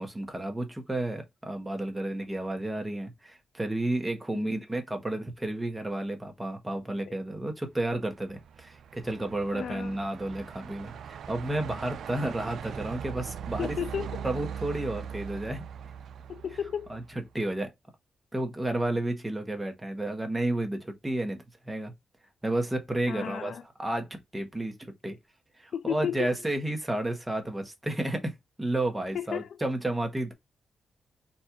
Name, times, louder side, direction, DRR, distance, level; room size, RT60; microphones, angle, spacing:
voice 1, 0.0-13.8 14.2-15.6 16.9-17.0 17.3-17.7 18.3-21.9 22.4-23.5 23.8-25.2 25.6-30.3, right 1 dB, 10° right, 1.0 m, -32 dB
Truck, 8.1-17.3, right 8 dB, 75° right, 0.4 m, -40 dB
voice 2, 9.5-10.0 13.6-14.3 16.3-17.0 23.1-23.6 25.7-26.4 29.1-29.6, left 8 dB, 65° left, 0.4 m, -33 dB
4.2 x 2.4 x 4.2 m
wide cardioid pair, 160°, 0 cm